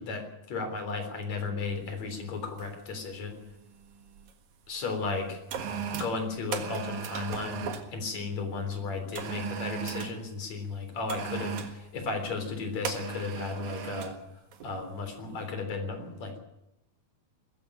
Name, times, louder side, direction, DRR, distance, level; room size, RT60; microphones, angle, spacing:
voice 1, 0.0-3.4 4.7-5.4 5.9-7.6 7.9-14.2 14.6-16.4, left 4 dB, 70° left, 6 dB, 5.0 m, -34 dB
sound 1, 1.7-1.9 2.6-2.9 3.1-4.3 5.0-7.9 9.1-10.2 11.1-11.8 12.8-14.2 14.5-14.7, right 7 dB, 75° right, 3.1 m, -37 dB
20.5 x 15.0 x 9.0 m, 0.88 s
omnidirectional pair, 3.3 m